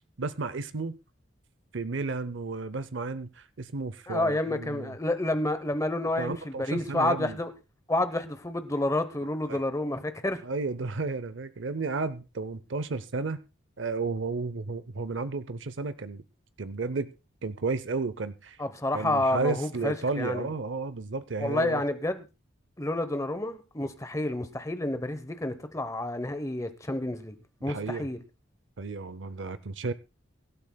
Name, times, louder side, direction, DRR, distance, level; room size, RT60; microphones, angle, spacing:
voice 1, 0.2-0.9 1.7-4.9 6.2-7.4 9.5-9.7 10.4-13.4 13.8-16.2 16.6-17.1 17.4-18.6 18.9-21.8 27.7-28.0 28.8-29.9, right 3 dB, 65° right, 0.7 m, -32 dB
voice 2, 4.1-7.5 7.9-10.4 18.6-20.5 21.4-22.2 22.8-27.3 27.6-28.2, left 1 dB, 15° left, 0.9 m, -29 dB
24.0 x 12.0 x 2.3 m
head